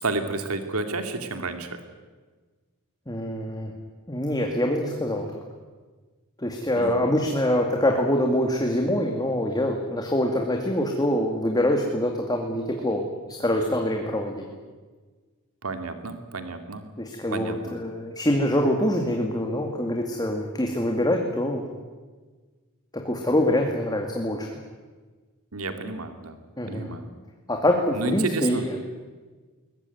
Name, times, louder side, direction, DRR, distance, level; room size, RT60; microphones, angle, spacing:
voice 1, 0.0-1.8 6.7-7.0 15.6-16.9 17.3-17.7 25.5-26.4 26.7-27.0 27.9-28.6, right 3 dB, 75° right, 8 dB, 2.3 m, -31 dB
voice 2, 3.1-3.7 4.1-5.4 6.4-14.4 17.0-21.6 22.9-24.6 26.6-26.9 27.5-28.8, left 1 dB, 20° left, 2 dB, 2.3 m, -25 dB
21.5 x 20.5 x 9.5 m, 1.4 s
head